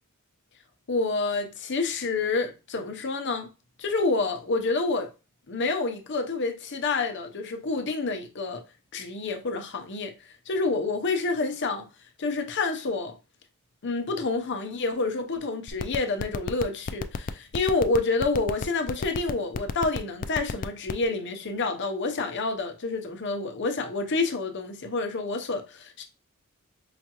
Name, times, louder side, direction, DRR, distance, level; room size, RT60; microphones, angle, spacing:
voice 1, 0.9-3.5 3.8-5.1 5.5-8.6 8.9-10.1 10.5-11.9 12.2-13.1 13.8-26.0, left 3 dB, 55° left, 0.7 m, -28 dB
sound 1, 15.7-21.0, left 5 dB, 40° left, 0.3 m, -30 dB
4.9 x 2.3 x 2.9 m
head